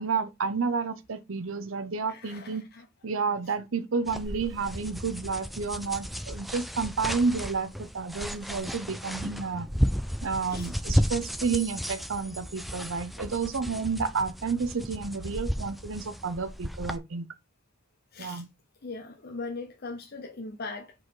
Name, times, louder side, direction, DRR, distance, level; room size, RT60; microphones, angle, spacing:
voice 1, 0.0-2.6 3.0-9.7 10.2-17.3 18.2-18.5, right 5 dB, 85° right, 0.7 m, -30 dB
voice 2, 2.1-2.9 10.5-10.7 18.1-18.4 18.8-20.9, left 3 dB, 50° left, 0.7 m, -40 dB
sound 1, 4.1-17.0, equal, ahead, 0.3 m, -33 dB
4.8 x 4.0 x 4.8 m
head